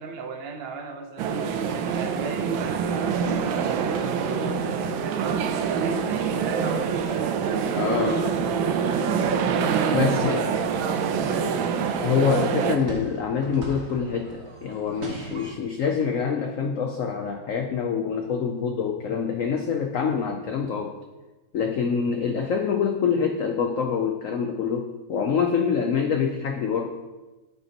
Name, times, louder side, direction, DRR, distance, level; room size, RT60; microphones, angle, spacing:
voice 1, 0.0-1.3 1.8-8.1 8.8-11.6, right 3 dB, 60° right, 4 dB, 0.6 m, -36 dB
sound 1, 1.2-12.8, right 6 dB, 85° right, 1.4 m, -25 dB
voice 2, 7.7-8.4 9.9-10.5 12.0-21.0 21.5-27.0, left 6 dB, 85° left, 4 dB, 0.7 m, -25 dB
sound 2, 7.8-15.5, right 2 dB, 35° right, 1.4 m, -43 dB
9.4 x 7.9 x 2.9 m, 1.1 s
omnidirectional pair, 2.1 m